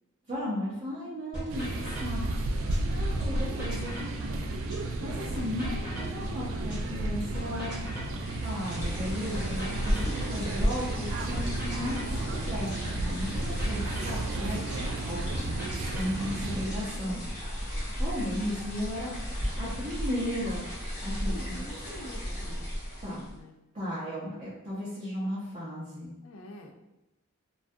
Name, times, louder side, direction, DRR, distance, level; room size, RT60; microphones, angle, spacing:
voice 1, 0.3-2.5 2.9-4.0 5.0-7.7 8.4-14.6 15.0-15.6 15.9-17.2 18.0-20.7 21.0-21.6 23.0-23.3 23.7-26.1, equal, 35° right, -10 dB, 0.6 m, -35 dB
sound 1, 1.3-2.9 3.2-6.9 7.2-10.9 11.2-14.9 15.2-17.3, equal, 5° right, 0.9 m, -41 dB
sound 2, 1.5-16.7, right 2 dB, 80° right, 0.3 m, -33 dB
sound 3, 8.0-23.4, equal, 35° left, 1.0 m, -35 dB
voice 2, 21.2-22.8 23.3-23.6 26.2-26.7, left 1 dB, 80° left, 3 dB, 0.4 m, -46 dB
2.3 x 2.2 x 2.5 m, 0.96 s
head